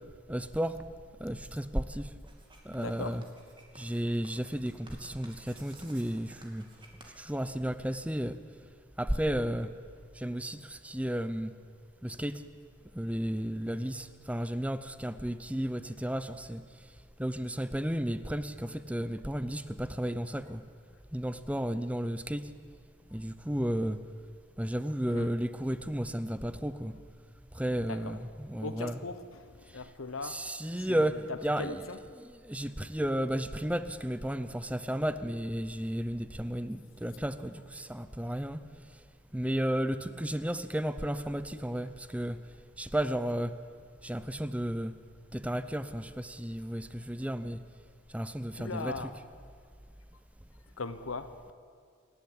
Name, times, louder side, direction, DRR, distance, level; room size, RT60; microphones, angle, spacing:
voice 1, 0.3-0.9 1.2-2.2 2.6-3.2 3.8-6.6 7.2-8.4 9.0-9.7 10.1-11.5 12.0-12.4 12.9-16.8 17.2-20.6 21.1-22.5 23.1-24.0 24.6-27.0 27.5-29.0 30.2-31.7 32.2-38.6 39.3-42.4 42.8-43.5 44.0-44.9 45.3-47.6 48.1-48.9, equal, 5° right, 13 dB, 0.6 m, -33 dB
Writing, 2.2-8.0, right 2 dB, 25° right, 2.8 m, -56 dB
voice 2, 2.8-3.2 25.1-25.4 27.8-28.2 28.6-32.0 48.6-49.2 50.8-51.5, left 3 dB, 80° left, 10 dB, 1.1 m, -40 dB
28.0 x 12.0 x 8.7 m, 2.1 s
head